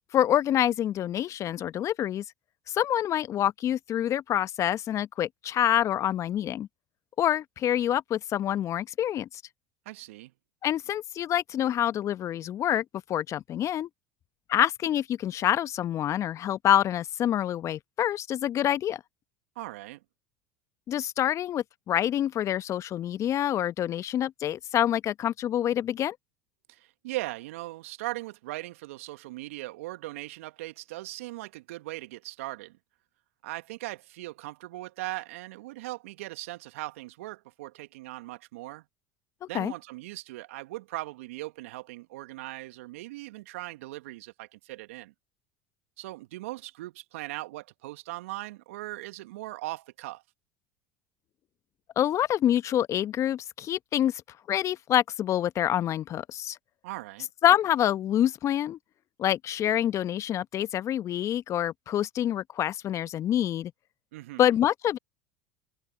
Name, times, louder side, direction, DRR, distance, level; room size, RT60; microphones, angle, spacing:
voice 1, 0.1-2.2 2.7-6.7 7.2-9.3 10.6-12.8 13.1-13.9 14.5-19.0 20.9-26.1 39.4-39.7 52.0-54.2 54.5-56.6 57.4-58.8 59.2-63.7 64.4-65.0, left 11 dB, 40° left, 1.3 m, -26 dB
voice 2, 9.8-10.3 19.5-20.0 26.7-32.8 33.4-38.8 39.5-45.1 46.0-50.2 56.8-57.3 64.1-64.4, right 19 dB, 70° right, 1.4 m, -39 dB
hypercardioid pair, 75°, 8 cm